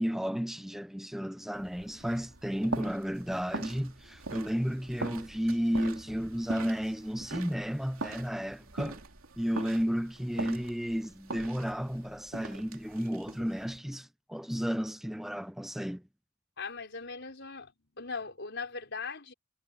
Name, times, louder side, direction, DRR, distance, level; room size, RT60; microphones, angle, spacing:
voice 1, 0.0-9.0 9.4-16.0, equal, ahead, 0.5 m, -33 dB
sound 1, 1.5-13.8, right 3 dB, 85° right, 3.0 m, -42 dB
voice 2, 16.6-19.3, left 4 dB, 60° left, 5.3 m, -39 dB
head